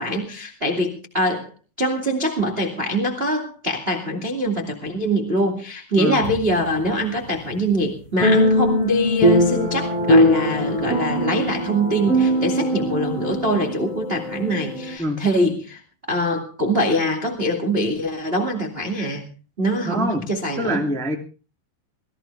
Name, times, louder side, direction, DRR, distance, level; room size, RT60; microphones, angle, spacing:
voice 1, 0.0-1.5 1.8-15.8 16.1-19.3 19.6-20.8, equal, 25° right, 2 dB, 1.3 m, -23 dB
sound 1, 6.2-6.7 8.2-15.0, equal, 35° left, 5.8 m, -20 dB
voice 2, 19.8-20.2 20.6-21.1, equal, ahead, 0 dB, 1.2 m, -24 dB
21.0 x 15.0 x 3.4 m, 0.36 s
omnidirectional pair, 5.3 m